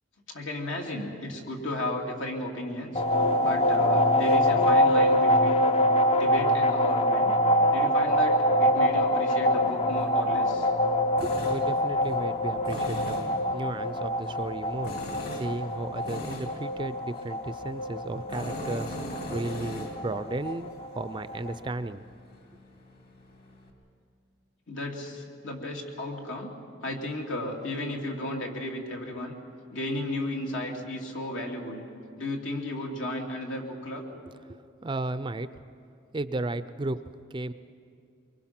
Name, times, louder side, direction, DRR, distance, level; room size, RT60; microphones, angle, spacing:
voice 1, 0.3-3.0 3.4-5.7 6.2-7.3 7.7-10.7 24.7-26.5 26.8-29.3 29.7-31.9 32.2-34.0, left 1 dB, 80° left, 0 dB, 2.8 m, -34 dB
sound 1, 2.9-21.5, equal, 30° left, 0.5 m, -25 dB
Tools, 9.6-23.7, left 1 dB, 50° left, 2.7 m, -42 dB
voice 2, 11.2-15.0 15.3-22.0 34.5-35.5 36.1-37.0 37.3-37.5, right 2 dB, 25° right, 13 dB, 0.4 m, -34 dB
23.5 x 23.5 x 5.9 m, 2.4 s
head